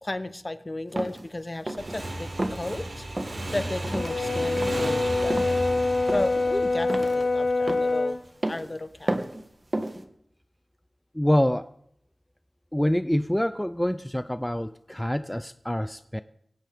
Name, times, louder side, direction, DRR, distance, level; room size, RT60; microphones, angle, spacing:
voice 1, 0.0-5.6 6.1-8.2 8.5-9.2, left 2 dB, 35° left, 12 dB, 0.9 m, -34 dB
sound 1, 1.0-1.2 1.7-2.0 2.4-2.6 3.1-3.4 3.8-4.2 4.6-4.9 5.3-5.6 6.1-6.4 6.9-7.2 7.7-7.9 8.4-8.7 9.1-9.4 9.7-10.0, right 1 dB, 40° right, 1.5 m, -31 dB
Motorcycle / Engine, 1.8-8.1, right 1 dB, 80° right, 5.2 m, -35 dB
Brass instrument, 3.9-8.2, left 3 dB, 75° left, 0.7 m, -25 dB
voice 2, 11.2-11.7 12.7-16.2, equal, 10° left, 13 dB, 0.4 m, -26 dB
17.0 x 17.0 x 3.6 m, 0.71 s
wide cardioid pair, 50°, 0 cm